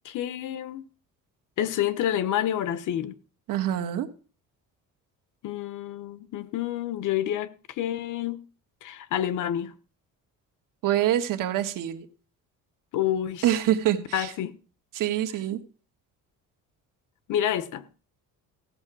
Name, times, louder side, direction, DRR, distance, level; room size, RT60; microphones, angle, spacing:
voice 1, 0.0-0.9 1.6-3.1 5.4-8.4 8.8-9.7 12.9-13.5 14.1-14.5 17.3-17.8, left 11 dB, 65° left, 1.0 m, -28 dB
voice 2, 3.5-4.1 10.8-12.1 13.4-14.3 14.9-15.6, right 12 dB, 75° right, 1.5 m, -25 dB
16.0 x 6.9 x 6.1 m
cardioid pair, 145°, 33 cm